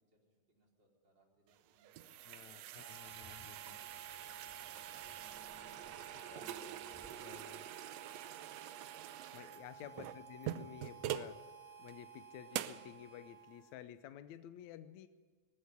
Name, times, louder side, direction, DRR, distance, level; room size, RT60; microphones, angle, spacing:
voice 1, 0.0-3.2 3.8-6.3 9.3-10.0, right 1 dB, 35° right, -1 dB, 4.9 m, -72 dB
sound 1, 1.5-11.4 11.9-12.0 12.5-12.9, right 12 dB, 75° right, 1.7 m, -45 dB
voice 2, 2.3-3.8 6.2-6.7 7.2-7.7 9.3-11.4 11.8-15.1, left 11 dB, 80° left, 11 dB, 2.1 m, -52 dB
Harmonica, 2.8-13.8, right 7 dB, 50° right, 2.8 m, -55 dB
sound 2, 3.0-7.1, equal, ahead, 2.9 m, -64 dB
19.0 x 15.5 x 9.6 m, 1.5 s
omnidirectional pair, 3.3 m